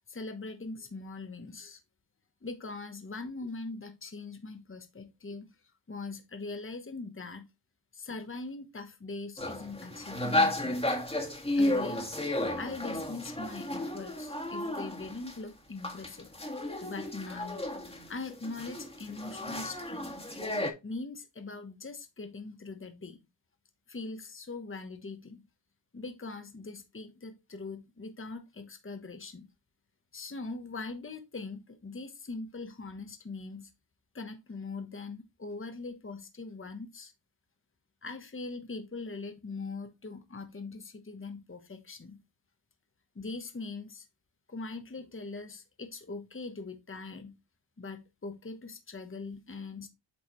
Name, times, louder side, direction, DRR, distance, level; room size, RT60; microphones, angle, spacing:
voice 1, 0.1-1.8 2.4-5.5 5.9-7.5 7.9-10.8 11.6-12.1 12.6-16.3 16.8-20.1 20.8-23.2 23.9-25.5 25.9-29.5 30.1-33.7 34.1-37.1 38.0-42.2 43.1-44.1 44.5-47.4 47.8-49.9, left 3 dB, 30° left, 1.1 m, -41 dB
sound 1, 9.4-15.3 15.8-20.7, left 1 dB, 15° left, 1.7 m, -33 dB
8.3 x 4.6 x 3.1 m
wide cardioid pair, 75°, 43 cm